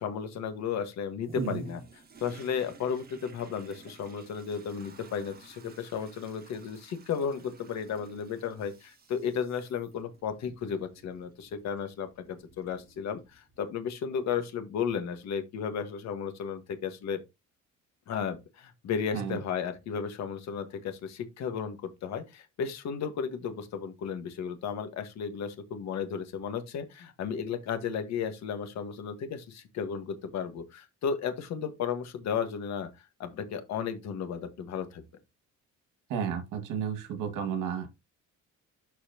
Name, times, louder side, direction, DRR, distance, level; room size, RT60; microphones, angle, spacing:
voice 1, 0.0-1.8 2.2-17.2 18.1-32.9 33.2-35.0, left 7 dB, 60° left, 1.6 m, -34 dB
Toilet flush, 1.2-13.7 14.2-14.3, right 5 dB, 30° right, 1.6 m, -54 dB
voice 2, 36.1-37.9, right 7 dB, 75° right, 2.2 m, -32 dB
12.0 x 4.3 x 2.9 m
cardioid pair, 150°, 31 cm